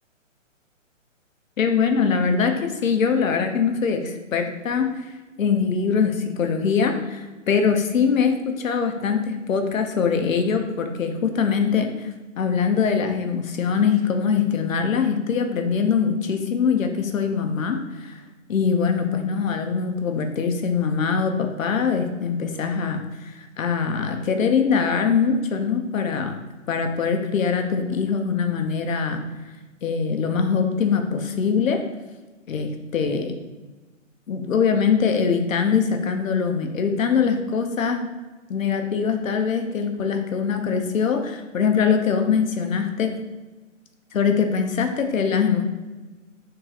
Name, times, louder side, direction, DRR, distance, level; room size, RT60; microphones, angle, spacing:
voice 1, 1.6-5.1 5.4-18.2 18.5-26.4 26.7-29.2 29.8-31.8 32.5-33.4 34.3-38.1 38.5-43.1 44.1-45.6, left 6 dB, 80° left, 5 dB, 0.7 m, -23 dB
3.7 x 2.8 x 3.9 m, 1.2 s
hypercardioid pair, 160°, 39 cm